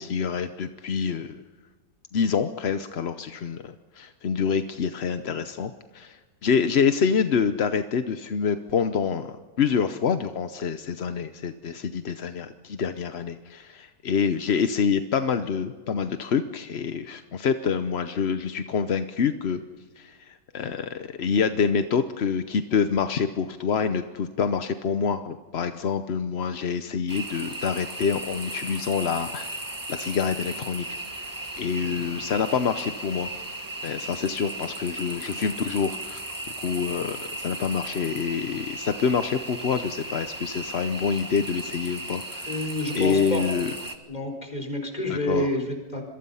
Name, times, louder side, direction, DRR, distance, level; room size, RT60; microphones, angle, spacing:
voice 1, 0.0-1.4 2.1-19.6 20.0-29.6 29.9-30.9 31.2-31.3 31.6-33.3 33.8-36.2 36.6-42.6 42.9-43.7 45.1-45.5, left 6 dB, 50° left, 9 dB, 0.8 m, -26 dB
sound 1, 27.1-44.0, right 1 dB, 10° right, 1.5 m, -36 dB
voice 2, 42.5-43.4 44.1-46.0, left 1 dB, 20° left, 4 dB, 4.6 m, -29 dB
27.0 x 22.5 x 5.6 m, 1.4 s
omnidirectional pair, 2.0 m